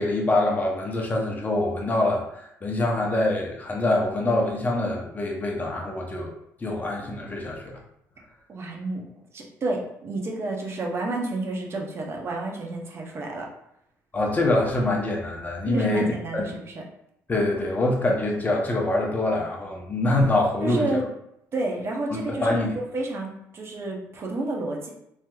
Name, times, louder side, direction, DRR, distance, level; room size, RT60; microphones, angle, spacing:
voice 1, 0.0-6.3 6.6-7.8 14.1-16.1 16.3-16.5 17.3-20.8 22.1-22.8, left 2 dB, 25° left, 0 dB, 0.7 m, -25 dB
voice 2, 8.5-9.1 9.3-13.5 15.7-16.7 20.6-21.0 21.5-22.5 22.7-24.9, right 2 dB, 40° right, -1 dB, 0.7 m, -30 dB
3.3 x 2.7 x 2.3 m, 0.77 s
cardioid pair, 95°, 6 cm